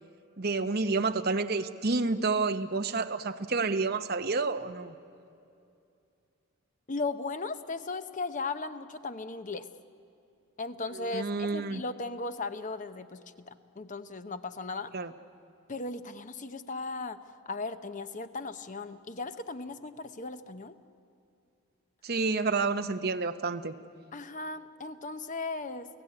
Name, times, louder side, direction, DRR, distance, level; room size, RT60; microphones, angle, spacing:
voice 1, 0.4-4.9 10.9-11.8 14.9-15.1 22.0-23.7, right 3 dB, 45° right, 8 dB, 0.9 m, -29 dB
voice 2, 6.9-9.7 10.6-14.9 15.7-17.2 17.5-20.8 24.1-25.9, left 3 dB, 35° left, 10 dB, 0.8 m, -37 dB
29.0 x 16.0 x 9.7 m, 2.6 s
head